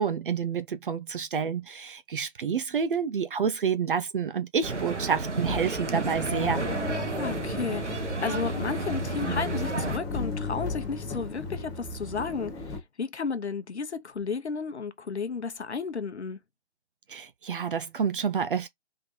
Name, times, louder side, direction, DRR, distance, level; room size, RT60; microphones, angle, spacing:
voice 1, 0.0-6.6 17.1-18.7, right 6 dB, 50° right, 0.7 m, -29 dB
sound 1, 4.6-10.0, right 3 dB, 90° right, 1.2 m, -32 dB
sound 2, 5.4-12.8, left 3 dB, 10° left, 0.8 m, -35 dB
voice 2, 7.2-16.4, left 5 dB, 70° left, 1.0 m, -33 dB
3.9 x 3.4 x 3.9 m
figure-of-eight pair, 130°, 34 cm